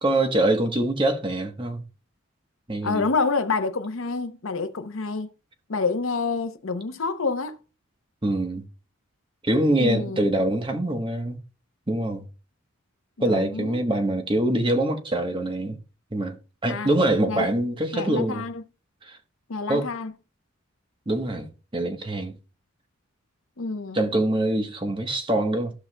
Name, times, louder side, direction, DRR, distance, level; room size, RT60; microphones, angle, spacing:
voice 1, 0.0-1.8 2.7-3.0 8.2-8.6 9.4-11.4 11.9-12.3 13.2-15.8 16.1-16.4 16.6-18.4 19.0-19.2 19.7-19.9 21.1-22.3 23.9-25.7, right 1 dB, 25° right, 1.0 m, -24 dB
voice 2, 2.8-5.3 5.7-7.6 9.8-10.3 13.2-13.8 16.7-16.9 17.3-17.5 17.9-18.6 19.5-20.1 23.6-24.1, left 4 dB, 75° left, 0.7 m, -28 dB
15.0 x 5.8 x 2.2 m
head